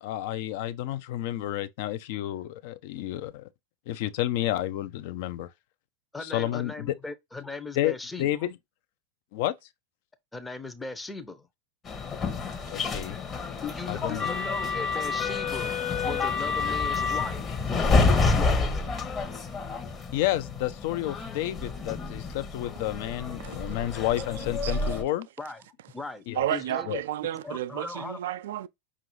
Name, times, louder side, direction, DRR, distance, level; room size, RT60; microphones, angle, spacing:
voice 1, 0.0-3.5 3.9-5.5 6.2-6.9 7.8-8.6 9.3-9.5 12.7-13.2 13.9-14.3 20.1-25.3 26.3-26.4 26.9-27.0, left 14 dB, 55° left, 0.5 m, -30 dB
voice 2, 6.1-8.3 10.3-11.5 13.6-18.9 25.4-25.6 25.9-26.3 26.5-26.9 27.4-28.2, left 3 dB, 10° left, 0.6 m, -38 dB
sound 1, 11.9-25.0, left 4 dB, 25° left, 0.9 m, -28 dB
voice 3, 26.4-28.7, right 12 dB, 60° right, 0.3 m, -31 dB
5.2 x 2.5 x 3.0 m
figure-of-eight pair, 90°, 0 cm